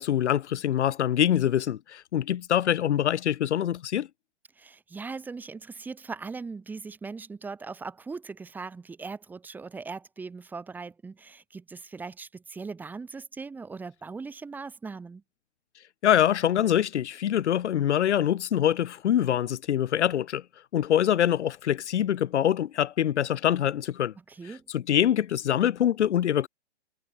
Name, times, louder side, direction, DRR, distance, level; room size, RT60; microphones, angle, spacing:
voice 1, 0.0-4.1 16.0-20.4 20.7-24.1 24.7-26.5, left 10 dB, 80° left, 0.8 m, -24 dB
voice 2, 4.6-15.2 24.3-24.7, right 4 dB, 5° right, 1.7 m, -39 dB
hypercardioid pair, 165°, 34 cm